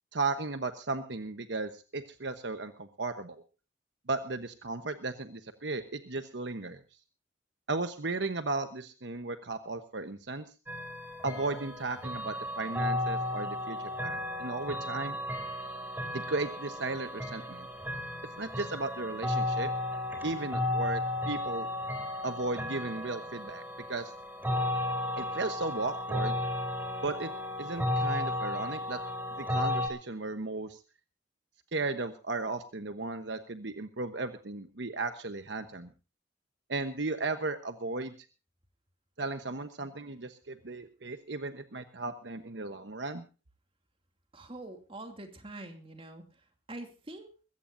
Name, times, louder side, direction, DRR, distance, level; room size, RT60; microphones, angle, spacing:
voice 1, 0.1-3.4 4.1-6.8 7.7-10.5 11.2-15.2 16.1-17.7 18.4-19.7 20.2-21.7 22.2-23.6 23.9-24.1 25.2-26.4 27.0-27.3 27.6-29.0 29.4-30.8 31.7-35.9 36.7-38.1 39.2-43.2, right 3 dB, 65° right, 8 dB, 1.1 m, -35 dB
sound 1, 10.7-29.9, left 1 dB, 10° right, 3.5 m, -34 dB
voice 2, 44.3-46.2 46.7-47.3, right 2 dB, 30° right, 5 dB, 2.6 m, -44 dB
22.0 x 16.0 x 2.7 m, 0.34 s
head